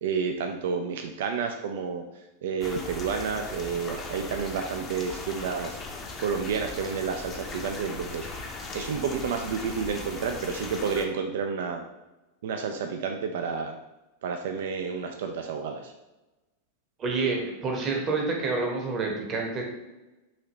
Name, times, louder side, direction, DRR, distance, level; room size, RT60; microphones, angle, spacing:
voice 1, 0.0-2.0 2.4-5.8 6.2-8.3 8.7-11.8 12.4-13.8 14.2-15.9, right 6 dB, 55° right, 5 dB, 0.3 m, -30 dB
sound 1, 2.6-11.1, left 3 dB, 25° left, 0.6 m, -39 dB
voice 2, 17.0-19.6, right 3 dB, 30° right, 0 dB, 1.0 m, -28 dB
5.6 x 2.8 x 3.0 m, 1.0 s
figure-of-eight pair, 90°, 0 cm